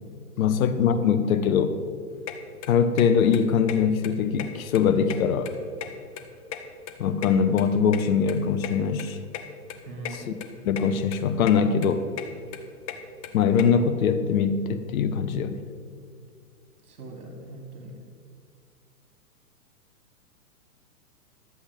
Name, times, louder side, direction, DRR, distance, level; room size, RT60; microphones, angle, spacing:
voice 1, 0.4-1.8 2.7-5.5 7.0-9.2 10.1-10.3 10.6-12.0 13.3-15.6, left 6 dB, 60° left, 9 dB, 0.9 m, -22 dB
sound 1, 2.3-2.4 2.6-3.1 3.3-3.4 3.7-3.8 4.0-4.8 5.1-6.3 6.5-8.0 8.3-8.4 8.6-8.7 9.0-9.1 9.3-9.5 9.7-10.1 10.4-10.8 11.1-11.6 11.8-13.6, left 12 dB, 25° left, 0.5 m, -35 dB
voice 2, 9.8-10.3 16.9-17.9, right 2 dB, 70° right, 1 dB, 3.2 m, -40 dB
12.0 x 8.1 x 5.1 m, 2.1 s
hypercardioid pair, 135°, 47 cm